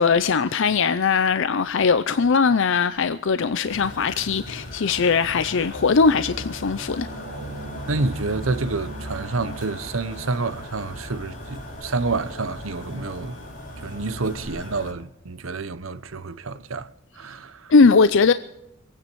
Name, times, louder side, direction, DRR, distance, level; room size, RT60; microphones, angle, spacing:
voice 1, 0.0-7.1 17.7-18.3, left 5 dB, 65° left, 0.6 m, -20 dB
sound 1, 3.6-14.9, equal, 40° left, 4.4 m, -37 dB
voice 2, 7.9-13.4 13.8-16.9 17.2-17.7, right 3 dB, 75° right, 0.9 m, -28 dB
25.5 x 9.6 x 4.6 m
head